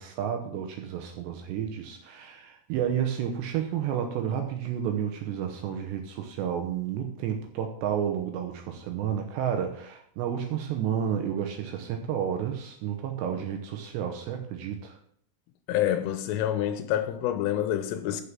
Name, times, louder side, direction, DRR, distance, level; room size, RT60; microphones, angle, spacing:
voice 1, 0.0-15.0, right 9 dB, 75° right, 2.7 m, -31 dB
voice 2, 15.7-18.2, left 11 dB, 85° left, 3.4 m, -27 dB
7.6 x 6.5 x 7.3 m
omnidirectional pair, 5.8 m